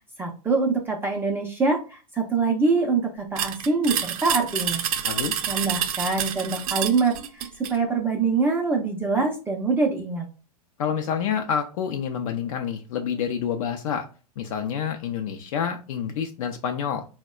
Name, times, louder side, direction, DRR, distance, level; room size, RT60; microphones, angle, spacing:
voice 1, 0.0-4.8 5.5-7.4 7.7-10.2, right 4 dB, 10° right, 0 dB, 0.5 m, -24 dB
sound 1, 3.4-7.8, right 9 dB, 60° right, 0.5 m, -28 dB
voice 2, 10.8-14.1 14.4-17.0, left 7 dB, 60° left, 5 dB, 0.5 m, -28 dB
4.0 x 2.1 x 2.3 m, 0.34 s
hypercardioid pair, 115°, 20 cm